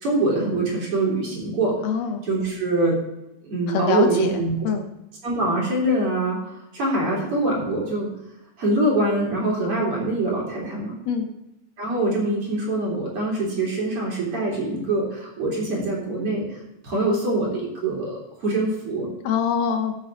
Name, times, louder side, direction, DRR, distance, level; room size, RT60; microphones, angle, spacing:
voice 1, 0.0-1.8 2.3-3.0 3.4-4.5 5.2-8.1 8.6-11.0 11.8-16.6 16.8-19.1, right 2 dB, 40° right, -3 dB, 4.3 m, -24 dB
voice 2, 1.8-2.2 3.7-4.3 4.6-4.9 11.1-11.3 19.2-20.0, left 6 dB, 65° left, 6 dB, 1.9 m, -24 dB
14.5 x 7.6 x 3.8 m, 0.91 s
omnidirectional pair, 3.8 m